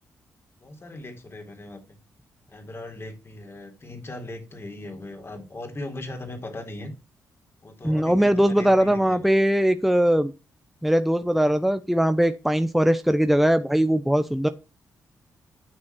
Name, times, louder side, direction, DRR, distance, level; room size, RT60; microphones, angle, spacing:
voice 1, 0.6-2.0 2.5-6.9 7.6-9.3, left 2 dB, 35° left, 5 dB, 3.6 m, -39 dB
voice 2, 7.8-10.3 10.8-14.5, equal, ahead, 10 dB, 0.9 m, -20 dB
9.9 x 6.2 x 4.5 m, 0.28 s
supercardioid pair, 50°, 7 cm